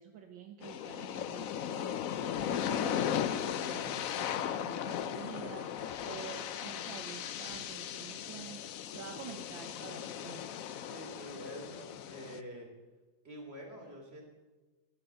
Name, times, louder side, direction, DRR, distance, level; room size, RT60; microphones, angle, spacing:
voice 1, 0.0-5.7 6.0-10.6, right 8 dB, 75° right, 5 dB, 1.7 m, -49 dB
sound 1, 0.6-12.4, left 9 dB, 65° left, 0.8 m, -37 dB
sound 2, 1.7-2.0 2.3-6.4 6.8-8.0 8.3-8.4, left 4 dB, 40° left, 1.4 m, -59 dB
voice 2, 10.8-12.7 13.2-14.3, equal, 30° right, 0 dB, 3.9 m, -47 dB
14.5 x 12.5 x 7.9 m, 1.2 s
omnidirectional pair, 2.2 m